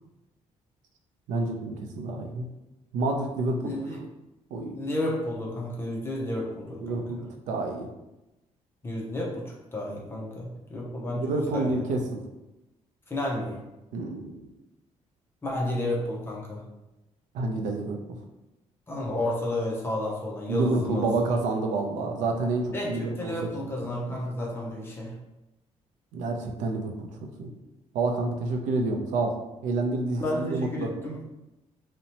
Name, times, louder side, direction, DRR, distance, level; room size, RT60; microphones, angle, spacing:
voice 1, 1.3-2.5 2.9-3.7 4.5-4.9 6.8-7.9 11.1-12.2 13.9-14.5 17.3-18.0 20.5-23.3 23.6-23.7 24.0-24.2 26.1-27.1 27.4-27.5 27.9-29.3 29.6-30.9, right 3 dB, 85° right, 3 dB, 0.4 m, -28 dB
voice 2, 3.6-4.0 4.7-7.3 8.8-11.2 11.5-11.8 13.1-13.6 15.4-16.6 18.9-21.1 22.7-25.1 30.2-31.2, left 1 dB, 20° left, -2 dB, 0.4 m, -31 dB
2.7 x 2.1 x 2.8 m, 0.96 s
cardioid pair, 165°, 12 cm